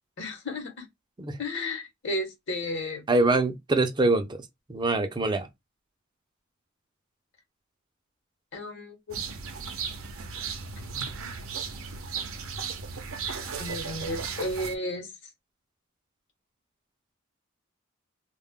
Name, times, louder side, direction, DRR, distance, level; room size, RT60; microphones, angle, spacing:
voice 1, 0.2-0.9 1.4-3.0 8.5-9.2 13.6-15.1, left 1 dB, 60° left, 0.9 m, -33 dB
voice 2, 3.1-4.4 4.7-5.5, right 2 dB, 20° right, 0.5 m, -24 dB
sound 1, 9.1-14.7, right 5 dB, 75° right, 0.6 m, -35 dB
2.3 x 2.1 x 3.5 m
head